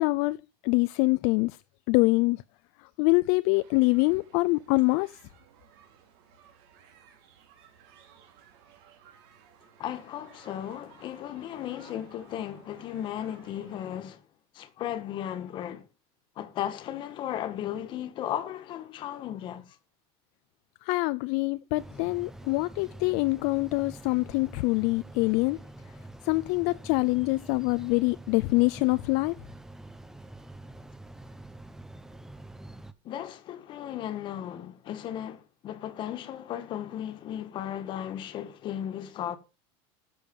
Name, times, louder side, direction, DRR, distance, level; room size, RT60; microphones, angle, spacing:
voice 1, 0.0-1.6 1.9-2.4 2.8-5.1 20.8-25.6 26.2-29.4, left 25 dB, 60° left, 0.5 m, -25 dB
sound 1, 3.5-13.9, right 8 dB, 70° right, 3.8 m, -57 dB
voice 2, 9.8-14.2 14.5-15.8 16.3-19.8 33.0-39.4, left 11 dB, 40° left, 1.6 m, -35 dB
sound 2, 21.7-32.9, right 1 dB, 5° right, 0.7 m, -46 dB
11.5 x 7.0 x 5.3 m
supercardioid pair, 150°, 13 cm